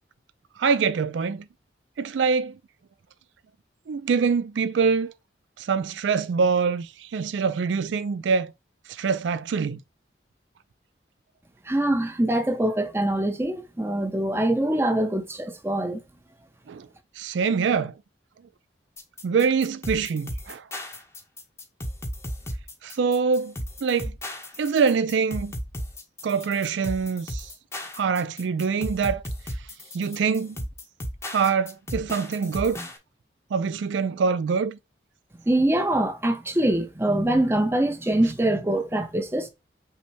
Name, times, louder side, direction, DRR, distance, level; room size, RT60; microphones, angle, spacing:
voice 1, 0.6-1.5 2.0-2.6 3.9-5.1 5.6-8.5 8.9-9.8 16.7-16.9 17.2-18.0 19.2-20.6 22.8-23.5 23.8-24.1 24.6-25.5 26.2-27.5 27.9-29.2 29.9-30.6 31.3-32.8 33.5-34.8, right 5 dB, 80° right, 0.4 m, -24 dB
voice 2, 11.7-16.0 35.5-39.5, right 1 dB, 15° right, 0.7 m, -24 dB
sound 1, 19.0-33.0, equal, 15° left, 0.8 m, -35 dB
5.6 x 2.1 x 4.4 m
head